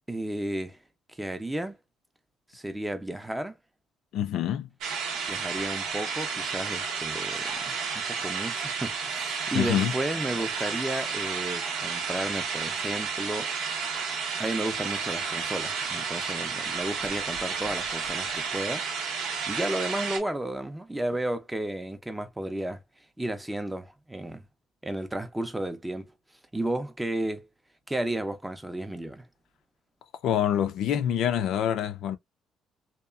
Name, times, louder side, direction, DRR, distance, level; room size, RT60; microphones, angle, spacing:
voice 1, 0.1-0.8 1.1-1.8 2.5-3.5 5.3-13.5 14.4-18.9 19.5-22.8 23.2-24.5 24.8-26.1 26.5-27.5 27.9-29.3, right 1 dB, 10° right, 0.5 m, -33 dB
voice 2, 4.1-4.7 9.5-9.9 30.2-32.2, left 10 dB, 75° left, 0.4 m, -26 dB
sound 1, 4.8-20.2, right 5 dB, 85° right, 0.7 m, -32 dB
2.9 x 2.3 x 2.2 m
cardioid pair, 110°, 0 cm